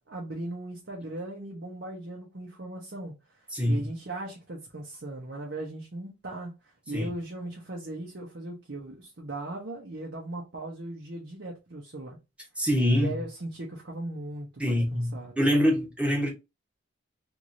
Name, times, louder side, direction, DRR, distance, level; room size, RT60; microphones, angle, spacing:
voice 1, 0.0-3.1 3.7-12.2 12.9-15.6, right 2 dB, 65° right, 0.8 m, -38 dB
voice 2, 3.5-3.8 6.9-7.1 12.6-13.1 14.6-16.3, equal, 5° right, 1.0 m, -25 dB
3.1 x 2.6 x 2.6 m
head